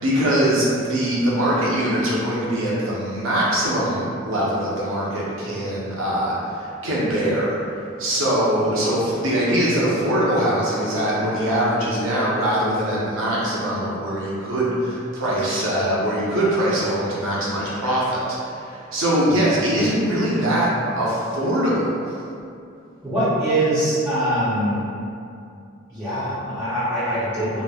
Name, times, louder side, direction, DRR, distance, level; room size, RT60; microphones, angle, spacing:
voice 1, 0.0-7.6 8.0-20.7 21.0-21.9, right 1 dB, 75° right, -7 dB, 0.7 m, -22 dB
voice 2, 23.0-24.8 25.9-27.6, right 1 dB, 10° right, -16 dB, 0.6 m, -23 dB
3.0 x 2.0 x 2.3 m, 2.5 s
head